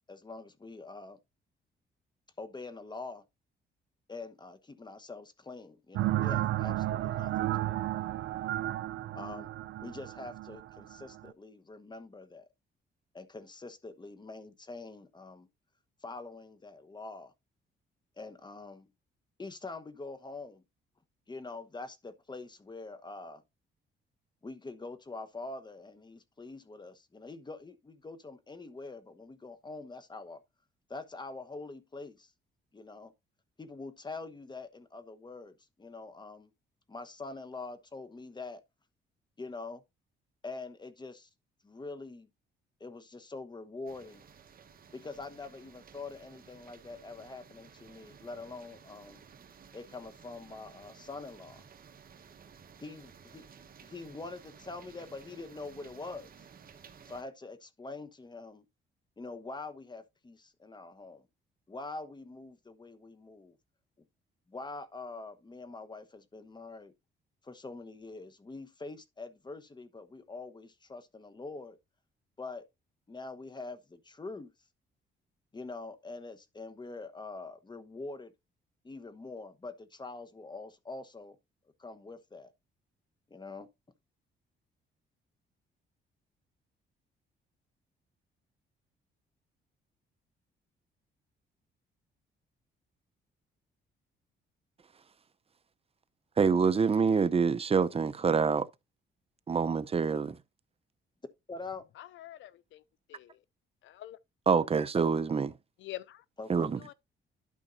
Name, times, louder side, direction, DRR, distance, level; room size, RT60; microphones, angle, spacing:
voice 1, 0.1-1.2 2.4-3.2 4.1-8.1 9.1-9.5 9.8-12.5 13.1-15.5 16.0-17.3 18.2-18.9 19.4-20.6 21.3-23.4 24.4-30.4 30.9-32.3 32.7-33.1 33.6-36.5 36.9-38.6 39.4-39.8 40.4-41.3 41.6-42.3 42.8-44.3 44.9-49.2 49.7-51.6 52.8-53.5 53.8-56.3 57.0-58.6 59.2-61.3 61.7-63.6 64.5-66.9 67.4-71.8 72.4-72.7 73.1-74.5 75.5-78.3 78.8-81.4 81.8-82.5 83.3-83.7 101.5-101.8 106.4-106.5, left 3 dB, 20° left, 1.2 m, -44 dB
sound 1, 5.9-11.3, right 14 dB, 75° right, 0.5 m, -33 dB
sound 2, 43.9-57.2, right 6 dB, 45° right, 1.2 m, -55 dB
voice 2, 96.4-98.7 99.5-100.4 104.5-105.5 106.5-106.8, right 5 dB, 30° right, 0.6 m, -26 dB
voice 3, 102.0-102.8 103.1-103.4 103.8-104.2 105.8-106.2 106.8-106.9, left 14 dB, 75° left, 0.5 m, -45 dB
12.0 x 5.3 x 2.7 m
cardioid pair, 90°, 20 cm